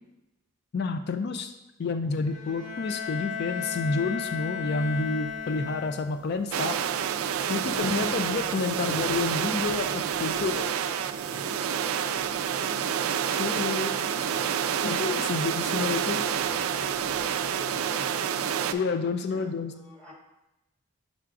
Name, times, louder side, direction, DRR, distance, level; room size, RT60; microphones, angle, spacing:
voice 1, 0.7-1.5 1.8-6.8 7.5-10.7 13.4-13.9 14.8-16.2 18.7-19.7, left 4 dB, 50° left, 8 dB, 0.3 m, -29 dB
Bowed string instrument, 2.2-6.3, left 6 dB, 85° left, 1.0 m, -35 dB
sound 1, 4.6-18.1, equal, 25° right, 0.6 m, -52 dB
sound 2, 6.5-18.7, right 8 dB, 80° right, 0.3 m, -28 dB
voice 2, 11.2-11.7 12.6-12.9 13.5-14.7 15.3-18.3 18.9-20.1, equal, 5° left, -6 dB, 1.4 m, -48 dB
6.6 x 5.8 x 2.4 m, 0.97 s
head